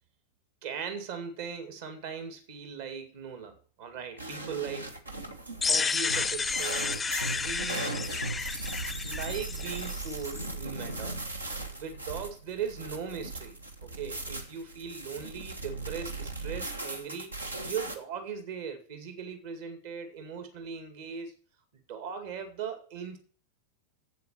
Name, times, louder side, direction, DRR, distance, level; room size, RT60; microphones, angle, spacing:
voice 1, 0.6-4.9 5.7-7.1 7.3-8.0 9.0-11.2 11.7-13.6 13.8-21.3 21.9-23.2, right 7 dB, 50° right, 6 dB, 2.2 m, -39 dB
sound 1, 4.2-18.0, right 2 dB, 80° right, 1.4 m, -38 dB
sound 2, 5.6-10.5, left 5 dB, 15° left, 0.4 m, -31 dB
8.1 x 7.5 x 7.2 m, 0.40 s
figure-of-eight pair, 90°, 0 cm